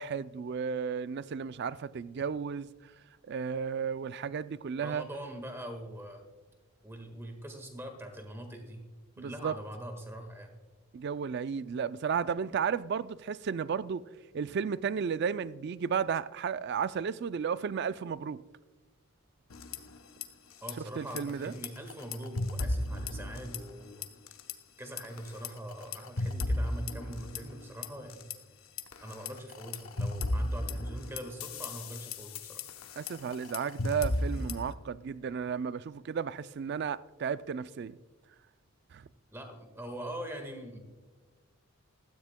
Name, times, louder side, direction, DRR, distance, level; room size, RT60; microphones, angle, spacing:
voice 1, 0.0-2.7 3.3-5.0 9.2-9.6 10.9-14.0 14.3-18.4 20.8-21.5 33.0-38.0 38.9-39.1, right 6 dB, 50° right, 0.3 m, -33 dB
voice 2, 4.8-6.2 6.8-8.8 9.2-10.5 20.6-24.0 24.8-28.3 29.0-32.6 39.3-40.8, right 1 dB, 10° right, 1.5 m, -43 dB
sound 1, 19.5-20.3 20.5-20.7 21.1-23.8 24.0-24.5 25.0-28.3 28.8-34.7, left 2 dB, 65° left, 0.8 m, -35 dB
16.0 x 13.5 x 2.2 m
head